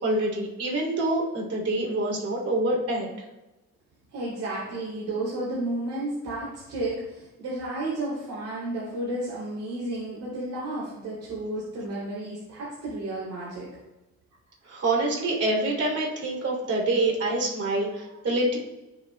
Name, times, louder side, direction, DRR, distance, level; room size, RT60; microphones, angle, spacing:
voice 1, 0.0-3.1 14.6-18.6, right 2 dB, 50° right, -2 dB, 2.8 m, -26 dB
voice 2, 4.1-13.7, right 1 dB, 85° right, -6 dB, 2.9 m, -32 dB
13.5 x 7.2 x 2.2 m, 1.0 s
cardioid pair, 90°, 30 cm